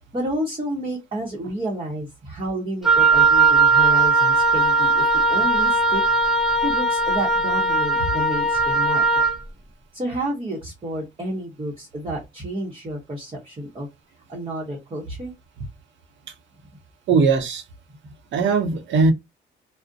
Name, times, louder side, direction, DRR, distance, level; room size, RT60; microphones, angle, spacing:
voice 1, 0.1-5.0 5.3-6.0 6.6-9.2 9.9-13.9 14.3-15.3 18.0-18.1, right 1 dB, 25° right, 0.9 m, -30 dB
Wind instrument woodwind instrument, 2.8-9.4, right 3 dB, ahead, 0.5 m, -18 dB
voice 2, 17.1-17.7 18.3-19.1, right 4 dB, 70° right, 0.7 m, -19 dB
2.4 x 2.1 x 2.5 m
cardioid pair, 90°, 20 cm